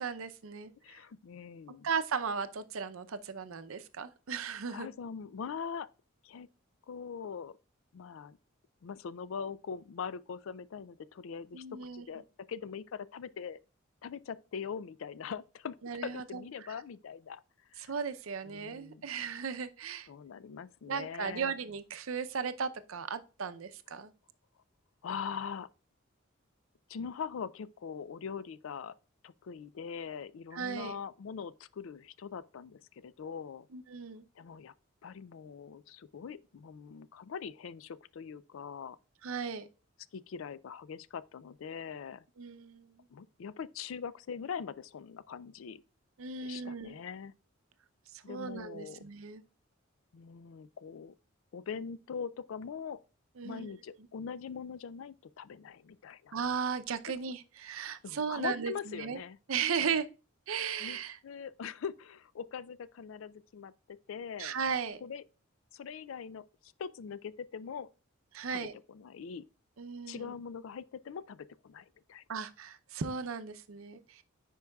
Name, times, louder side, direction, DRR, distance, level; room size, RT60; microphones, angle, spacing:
voice 1, 0.0-1.0 1.8-4.9 11.5-12.0 15.8-16.4 17.8-20.1 20.9-24.1 30.5-31.0 33.7-34.2 39.2-39.7 42.4-42.9 46.2-47.0 48.1-49.4 53.4-53.7 56.3-59.2 59.5-60.1 60.5-61.2 64.4-65.0 68.3-68.7 69.8-70.3 72.3-74.2, right 6 dB, 85° right, 0.6 m, -36 dB
voice 2, 0.8-1.9 4.7-5.9 6.2-6.5 6.9-7.6 7.9-8.4 8.8-12.2 12.5-13.6 14.0-15.8 16.0-17.4 17.7-17.9 18.5-19.1 20.1-21.5 25.0-25.7 26.9-28.9 29.2-33.7 34.4-34.7 35.0-39.0 40.1-42.2 43.1-45.8 46.4-47.3 48.2-49.0 50.1-51.1 51.5-53.0 53.4-56.3 57.8-59.4 59.8-60.0 60.8-61.0 61.2-64.6 65.0-65.2 65.7-67.9 68.5-69.5 70.1-72.2, left 6 dB, 75° left, 0.4 m, -42 dB
9.8 x 4.6 x 2.3 m
head